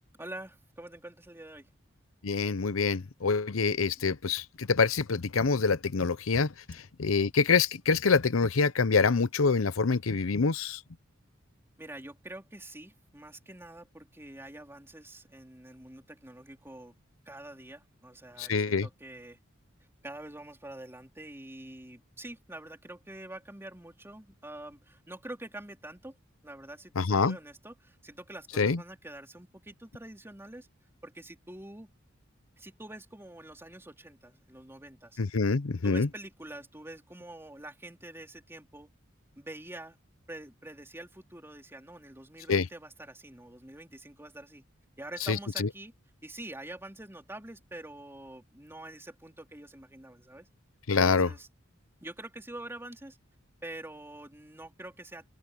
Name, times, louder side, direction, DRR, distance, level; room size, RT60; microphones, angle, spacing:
voice 1, 0.2-1.7 4.0-4.2 11.8-16.9 17.3-19.4 20.0-26.2 26.4-30.7 31.0-31.9 32.6-35.2 35.8-38.9 39.4-40.0 40.3-44.7 45.0-45.9 46.2-50.5 50.9-51.5 52.0-53.2 53.6-55.2, right 1 dB, 10° right, 3.6 m, -46 dB
voice 2, 2.2-6.5 7.0-10.8 18.4-18.9 27.0-27.4 28.6-28.8 35.2-36.1 42.5-42.7 45.3-45.7 50.9-51.3, left 4 dB, 80° left, 0.8 m, -26 dB
open air
head